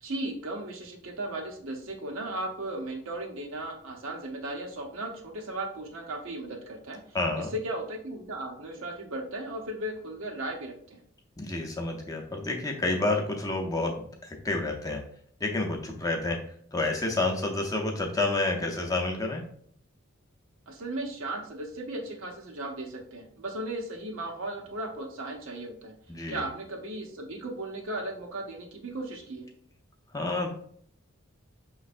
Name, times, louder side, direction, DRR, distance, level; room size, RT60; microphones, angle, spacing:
voice 1, 0.0-7.0 7.5-11.0 20.7-25.9 26.3-29.5, right 1 dB, 85° right, 2 dB, 0.8 m, -36 dB
voice 2, 7.1-7.5 11.4-15.0 15.4-16.4 16.7-19.4 26.1-26.4 30.1-30.5, left 2 dB, 15° left, 2 dB, 0.5 m, -29 dB
5.7 x 3.1 x 2.5 m, 0.62 s
head